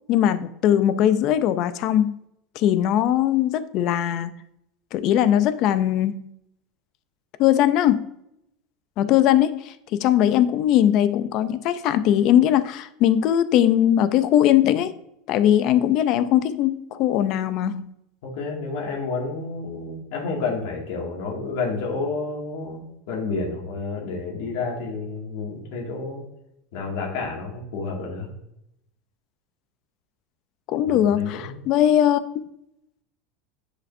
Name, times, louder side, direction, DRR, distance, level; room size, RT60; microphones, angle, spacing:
voice 1, 0.1-2.2 2.6-4.3 4.9-6.2 7.4-8.0 9.0-14.9 15.3-17.9 30.7-32.2, left 11 dB, 40° left, 12 dB, 0.5 m, -20 dB
voice 2, 18.2-26.2 26.7-28.3 30.9-31.6, left 4 dB, 65° left, -2 dB, 2.1 m, -30 dB
9.8 x 5.1 x 2.6 m, 0.80 s
supercardioid pair, 160°, 0 cm